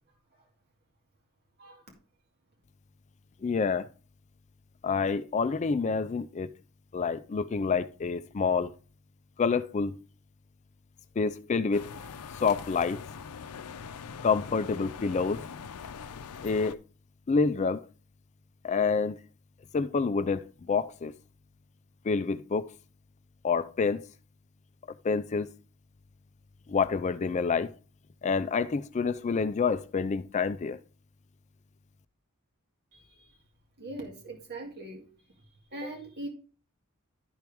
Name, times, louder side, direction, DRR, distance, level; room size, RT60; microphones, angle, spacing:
voice 1, 1.6-1.9 32.9-33.4 33.8-36.3, right 1 dB, 45° right, 2.0 m, -42 dB
voice 2, 3.4-3.9 4.8-6.5 6.9-8.7 9.4-9.9 11.2-11.9 12.3-13.0 14.2-15.4 16.4-16.8 17.3-17.8 18.6-19.2 19.7-21.1 22.0-22.7 23.4-24.1 25.0-25.5 26.7-27.7 28.2-30.8, left 5 dB, 30° left, 0.4 m, -28 dB
sound 1, 11.7-16.7, left 6 dB, 90° left, 0.5 m, -42 dB
12.0 x 4.6 x 3.5 m
head